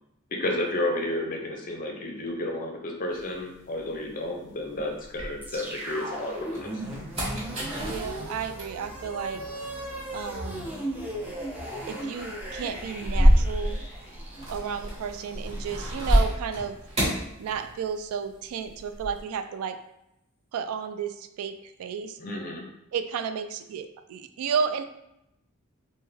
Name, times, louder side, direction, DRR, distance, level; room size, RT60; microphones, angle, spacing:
voice 1, 0.3-6.7 22.2-22.6, left 1 dB, 40° left, 1 dB, 0.5 m, -31 dB
sound 1, 3.1-5.9 6.4-18.1 18.4-19.2, equal, 30° right, 1.2 m, -29 dB
sound 2, 5.4-15.6, right 1 dB, 10° right, 0.6 m, -37 dB
voice 2, 7.8-9.4 10.1-10.7 11.9-13.8 14.5-16.8 17.4-19.8 20.5-22.2 22.9-24.8, right 6 dB, 85° right, 10 dB, 0.3 m, -32 dB
3.3 x 2.1 x 3.3 m, 0.84 s
head